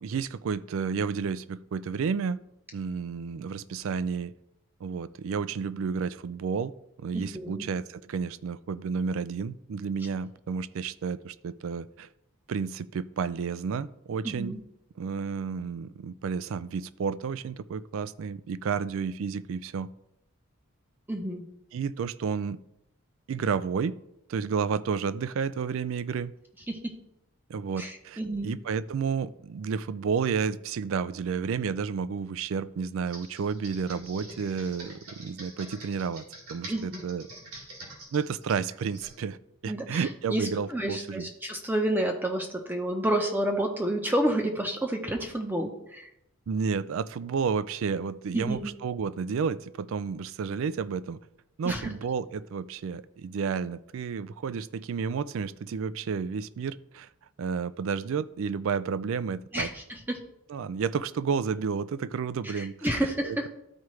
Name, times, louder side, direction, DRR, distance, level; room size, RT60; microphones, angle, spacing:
voice 1, 0.0-2.4 2.7-4.3 4.8-6.7 7.0-12.1 12.5-14.5 15.0-19.9 21.7-22.6 23.3-23.9 24.3-26.3 27.5-36.2 36.5-37.2 38.1-39.4 39.6-41.3 46.5-51.2 51.6-57.1 57.4-59.7 60.5-62.9 63.2-63.5, right 6 dB, 65° right, 16 dB, 0.3 m, -31 dB
voice 2, 7.1-7.7 14.2-14.6 21.1-21.4 26.7-26.9 27.8-28.5 36.7-37.0 39.7-46.1 48.3-48.7 51.6-51.8 59.5-60.2 62.5-63.5, right 1 dB, 10° right, 2 dB, 0.7 m, -30 dB
Computer keyboard, 33.0-39.2, right 2 dB, 80° right, 3.1 m, -46 dB
13.0 x 4.7 x 3.2 m, 0.83 s
head